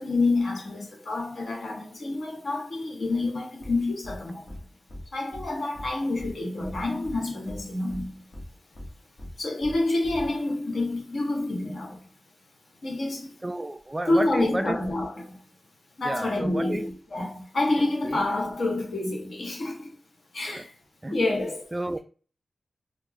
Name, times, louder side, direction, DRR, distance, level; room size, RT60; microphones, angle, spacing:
voice 1, 0.0-4.6 5.1-8.2 9.4-12.1 12.8-13.4 14.1-15.4 16.0-19.9 20.3-20.7 21.1-21.7, left 2 dB, 75° left, 1.5 m, -28 dB
sound 1, 3.6-3.7 4.0-4.2 4.5-4.6 4.9-5.0 5.3-5.4 5.7-5.9 6.2-6.3 6.6-7.2 7.5-7.6 7.9-8.0 8.3-8.4 8.7-8.9 9.2-9.3 9.6-9.7 10.0-10.3, left 1 dB, 55° left, 1.3 m, -39 dB
voice 2, 13.4-14.8 16.0-16.9 18.0-18.2 20.5-20.7 21.0-21.4 21.7-22.0, right 1 dB, 20° right, 0.3 m, -31 dB
4.4 x 2.4 x 2.9 m
wide cardioid pair, 90°, 0 cm